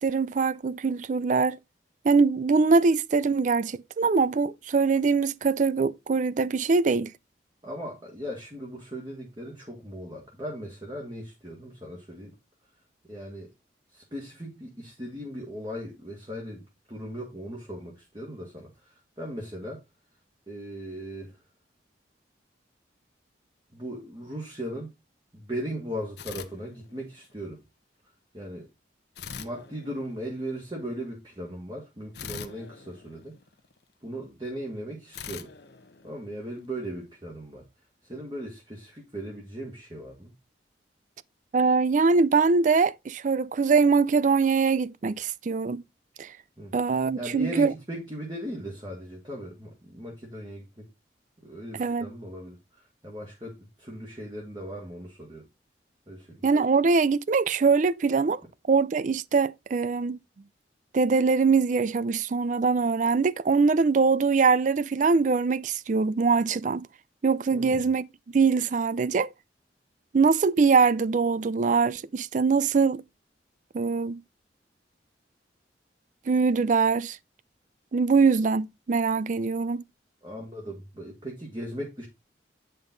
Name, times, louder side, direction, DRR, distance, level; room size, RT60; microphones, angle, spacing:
voice 1, 0.0-1.6 2.0-7.1 41.5-45.8 46.2-46.3 46.7-47.7 51.8-52.1 56.4-58.4 58.7-60.2 60.9-66.9 67.2-68.1 68.3-69.3 70.1-73.0 73.7-74.2 76.3-77.2 77.9-79.8, right 4 dB, 45° right, 0.4 m, -23 dB
voice 2, 7.6-12.4 13.1-13.5 13.9-19.8 20.5-21.4 23.7-24.9 25.3-27.6 28.3-28.7 29.4-33.3 34.0-35.5 36.0-37.6 38.0-40.3 46.6-46.7 47.2-50.9 51.4-55.4 56.1-56.5 67.5-67.8 80.2-82.1, equal, 25° right, 1.9 m, -38 dB
sound 1, 26.2-27.3 29.2-30.5 32.1-33.8 35.1-36.7, left 7 dB, 65° left, 0.9 m, -43 dB
8.9 x 5.4 x 3.9 m
head